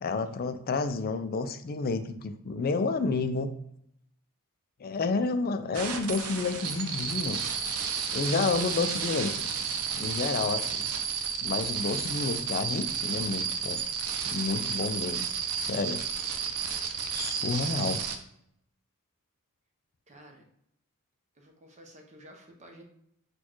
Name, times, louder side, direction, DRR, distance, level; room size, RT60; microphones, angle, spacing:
voice 1, 0.0-3.5 4.8-7.4 8.1-9.5 10.0-10.9 11.4-13.8 14.3-15.3 15.6-16.0 17.1-18.0, left 4 dB, 40° left, 9 dB, 0.4 m, -30 dB
sound 1, 5.7-18.2, right 6 dB, 70° right, 0.6 m, -32 dB
voice 2, 20.1-20.4 21.4-22.8, right 1 dB, 30° right, 2 dB, 0.8 m, -52 dB
4.3 x 2.3 x 4.5 m, 0.73 s
head